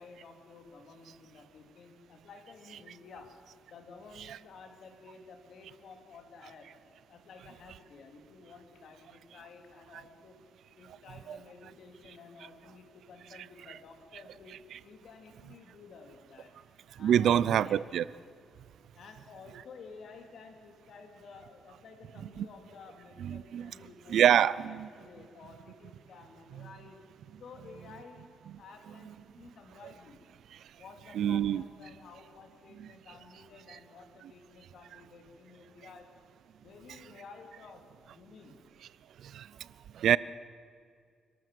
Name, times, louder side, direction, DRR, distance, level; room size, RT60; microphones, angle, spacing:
voice 1, 0.0-3.3 3.7-6.7 7.0-10.4 10.8-16.5 17.0-17.8 18.9-27.0 27.4-28.2 28.6-30.3 30.8-36.1 36.6-38.6, left 4 dB, 65° left, 2.8 m, -52 dB
voice 2, 17.0-18.0 22.4-22.5 23.2-23.7 24.1-24.9 31.1-31.6 32.8-32.9 39.3-39.5 40.0-40.2, right 10 dB, 75° right, 0.5 m, -25 dB
27.0 x 12.5 x 7.6 m
cardioid pair, 135°, 0 cm